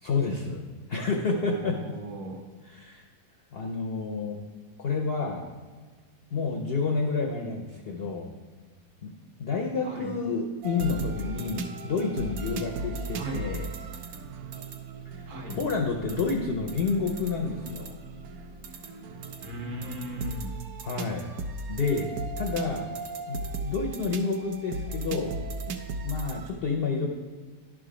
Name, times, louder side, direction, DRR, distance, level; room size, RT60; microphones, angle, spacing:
voice 1, 0.0-0.6 0.9-1.8 2.6-3.0 3.5-4.4 4.8-5.5 6.3-8.3 9.0-9.1 9.4-13.7 15.1-15.2 15.5-17.9 20.8-21.3 21.7-22.9 23.3-25.4 25.7-25.8 26.0-27.1, left 4 dB, 70° left, 2 dB, 0.6 m, -29 dB
voice 2, 1.3-2.4 9.8-10.1 13.1-13.4 15.3-15.6 19.4-20.5, right 1 dB, 55° right, 1 dB, 1.3 m, -37 dB
sound 1, 10.6-26.5, right 3 dB, 70° right, 1.0 m, -37 dB
10.5 x 3.8 x 4.9 m, 1.4 s
omnidirectional pair, 1.8 m